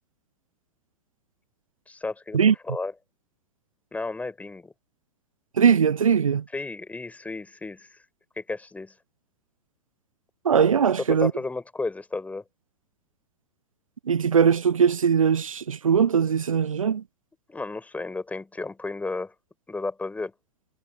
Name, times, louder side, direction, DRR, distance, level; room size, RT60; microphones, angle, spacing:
voice 1, 1.9-2.4 2.7-2.9 3.9-4.7 6.5-8.0 8.4-8.9 11.1-12.4 17.5-19.3 19.7-20.3, left 3 dB, 10° left, 6.0 m, -33 dB
voice 2, 5.6-6.4 10.4-11.3 14.1-17.0, right 7 dB, 80° right, 0.7 m, -20 dB
figure-of-eight pair, 100°, 17 cm